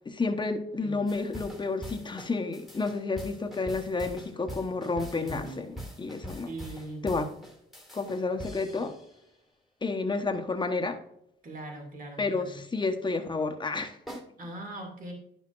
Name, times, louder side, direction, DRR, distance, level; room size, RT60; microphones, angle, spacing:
voice 1, 0.0-6.5 7.0-7.3 7.9-9.0 9.8-11.0 12.2-14.2, left 3 dB, 25° left, 6 dB, 1.0 m, -31 dB
sound 1, 1.1-9.2 14.1-14.2, equal, ahead, 1.9 m, -43 dB
voice 2, 5.2-5.7 6.5-7.1 11.4-12.6 14.4-15.1, right 2 dB, 45° right, 1 dB, 2.4 m, -41 dB
11.0 x 5.8 x 2.5 m, 0.76 s
cardioid pair, 90°, 20 cm